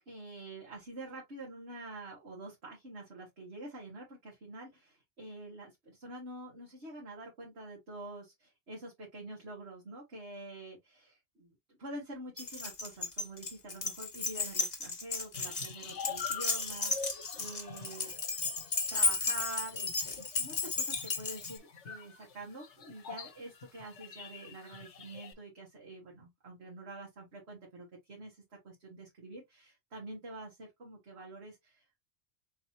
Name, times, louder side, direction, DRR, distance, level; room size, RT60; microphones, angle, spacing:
voice 1, 0.1-11.5 11.8-18.1 18.9-32.0, right 2 dB, 60° right, 2.0 m, -47 dB
Keys jangling, 12.4-21.6, left 3 dB, 35° left, 1.2 m, -34 dB
sound 1, 15.3-25.3, left 6 dB, 70° left, 1.2 m, -46 dB
4.3 x 3.9 x 2.9 m
omnidirectional pair, 1.2 m